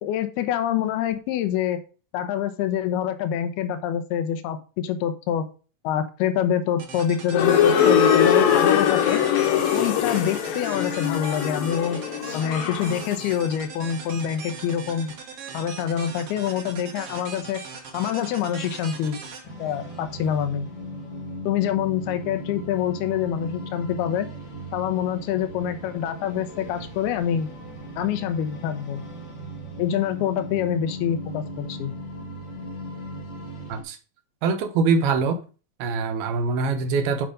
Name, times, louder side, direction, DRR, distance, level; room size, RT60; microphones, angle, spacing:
voice 1, 0.0-1.8 2.1-5.4 5.8-9.2 9.7-12.0 12.3-15.1 15.5-17.6 17.9-19.2 19.6-20.7 21.5-24.3 24.7-27.5 28.0-29.0 29.8-31.9, left 9 dB, 85° left, 2.9 m, -26 dB
sound 1, 6.8-20.4, right 5 dB, 50° right, 1.9 m, -40 dB
sound 2, 7.3-13.2, left 8 dB, 70° left, 2.6 m, -21 dB
sound 3, 19.4-33.8, equal, 45° left, 1.5 m, -37 dB
voice 2, 34.4-35.4 35.8-37.3, right 4 dB, 80° right, 2.9 m, -23 dB
9.3 x 5.1 x 5.1 m
omnidirectional pair, 4.5 m